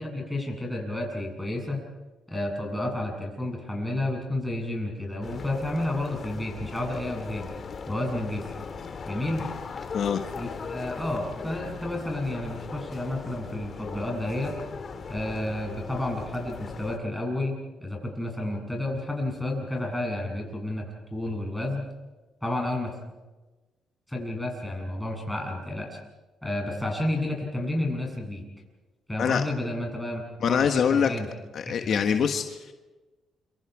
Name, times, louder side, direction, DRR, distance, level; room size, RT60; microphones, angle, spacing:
voice 1, 0.0-1.8 2.3-7.5 7.9-8.5 9.1-9.5 10.4-14.6 15.1-20.9 21.1-21.9 22.4-22.9 24.1-26.0 26.4-28.4 29.1-31.3 31.7-32.2, left 1 dB, 5° left, 0 dB, 7.9 m, -31 dB
sound 1, 5.2-17.0, left 5 dB, 45° left, 2.1 m, -39 dB
voice 2, 30.4-31.1 31.5-32.7, left 7 dB, 65° left, 6 dB, 1.3 m, -24 dB
29.0 x 25.0 x 4.9 m, 1.2 s
cardioid pair, 90°, 0 cm